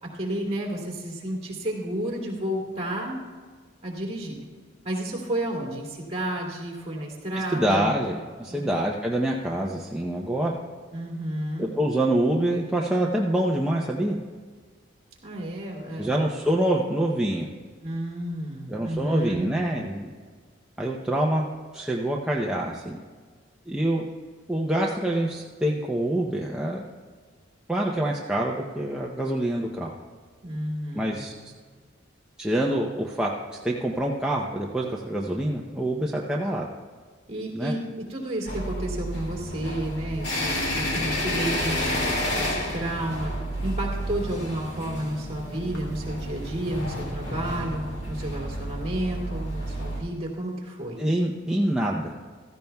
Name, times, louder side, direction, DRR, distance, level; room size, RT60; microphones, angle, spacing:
voice 1, 0.0-3.2 3.8-4.4 4.8-7.9 8.5-8.7 10.9-11.7 15.2-16.3 17.8-19.5 30.4-31.2 37.3-37.8 38.1-42.0 42.4-43.3 43.6-51.0, right 1 dB, 30° right, -3 dB, 2.7 m, -31 dB
voice 2, 7.3-10.6 11.6-14.2 16.0-17.5 18.7-20.1 20.8-21.5 21.7-23.0 23.7-24.1 24.5-26.8 27.7-29.9 30.9-31.3 32.4-33.3 33.6-36.7 37.5-37.7 51.0-52.1, right 1 dB, 5° right, -3 dB, 0.7 m, -26 dB
sound 1, 38.5-50.0, equal, 60° left, 2.3 m, -30 dB
16.0 x 14.0 x 2.3 m, 1.5 s
head